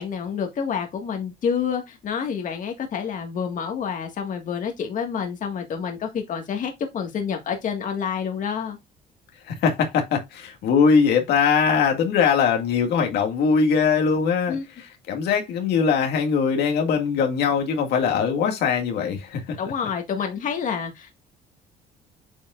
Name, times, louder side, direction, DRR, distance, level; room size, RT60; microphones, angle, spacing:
voice 1, 0.0-8.8 14.5-14.6 19.6-21.1, left 7 dB, 50° left, 1.8 m, -28 dB
voice 2, 9.5-19.4, left 6 dB, 75° left, 2.0 m, -21 dB
8.6 x 5.4 x 2.5 m
cardioid pair, 110°, 17 cm